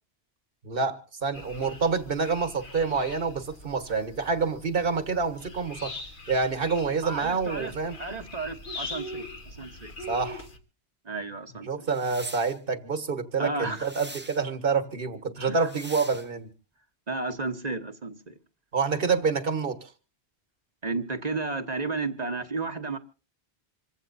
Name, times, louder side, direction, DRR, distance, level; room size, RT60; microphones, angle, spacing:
voice 1, 0.6-5.9 6.3-8.0 10.1-10.5 11.7-16.5 18.7-19.9, right 4 dB, 60° right, 1.7 m, -27 dB
sound 1, 1.3-10.6, left 1 dB, 50° left, 1.7 m, -42 dB
voice 2, 7.0-7.7 8.0-9.9 11.0-11.9 13.4-13.9 15.4-15.7 17.1-18.4 20.8-23.0, right 3 dB, 40° right, 1.3 m, -33 dB
sound 2, 11.9-12.6 13.7-14.4 15.6-16.3, right 1 dB, 10° right, 0.9 m, -43 dB
26.5 x 16.0 x 2.7 m
omnidirectional pair, 1.1 m